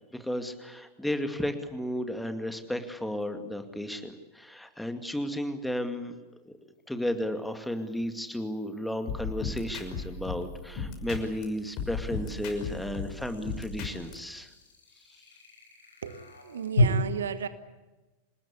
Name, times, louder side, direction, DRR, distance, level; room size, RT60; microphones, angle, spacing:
voice 1, 0.1-6.1 6.9-14.5, left 1 dB, 5° left, 8 dB, 2.3 m, -33 dB
sound 1, 3.2-3.3 6.7-16.9, left 1 dB, 70° left, 4.1 m, -36 dB
sound 2, 9.1-11.4 11.8-14.1, left 5 dB, 40° left, 5.8 m, -36 dB
voice 2, 16.0-17.5, right 7 dB, 65° right, 12 dB, 1.4 m, -34 dB
27.0 x 20.0 x 8.5 m, 1.1 s
figure-of-eight pair, 90°, 0 cm